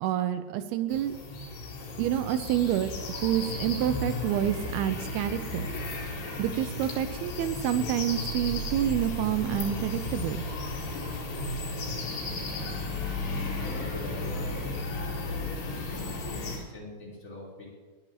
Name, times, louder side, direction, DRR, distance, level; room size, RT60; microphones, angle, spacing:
voice 1, 0.0-1.1 2.0-5.7 6.4-10.4, right 11 dB, 80° right, 10 dB, 2.4 m, -28 dB
sound 1, 0.9-16.6, left 2 dB, 75° left, 4.3 m, -34 dB
voice 2, 13.6-14.6 15.1-17.7, left 1 dB, 20° left, -5 dB, 3.5 m, -42 dB
21.0 x 10.0 x 2.9 m, 1.5 s
omnidirectional pair, 4.8 m